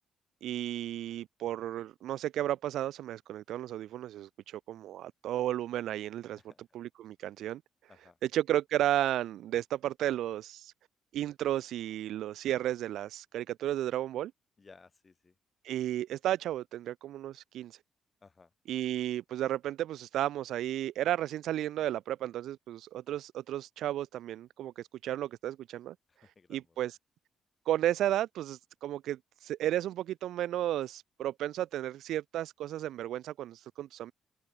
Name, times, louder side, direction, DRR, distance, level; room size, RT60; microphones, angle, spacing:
voice 1, 0.4-6.4 6.7-7.6 8.2-10.7 11.1-14.3 15.6-17.8 18.7-25.9 26.5-26.9 27.7-34.1, right 12 dB, 80° right, 0.6 m, -33 dB
voice 2, 14.6-15.4 18.2-18.5 26.1-26.8, left 4 dB, 30° left, 4.4 m, -58 dB
cardioid pair, 90°, 0 cm